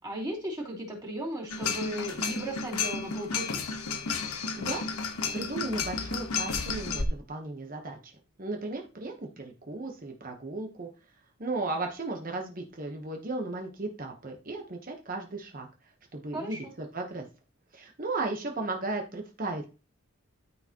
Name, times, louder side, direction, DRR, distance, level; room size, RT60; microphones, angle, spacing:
voice 1, 0.0-3.6 16.3-16.7, right 1 dB, 20° right, -3 dB, 2.9 m, -36 dB
sound 1, 1.5-7.0, left 5 dB, 85° left, 1.3 m, -32 dB
voice 2, 5.3-8.1 8.4-10.9 11.4-15.7 16.1-17.3 17.7-19.7, right 2 dB, 40° right, 2 dB, 1.0 m, -35 dB
13.0 x 4.9 x 3.0 m, 0.33 s
head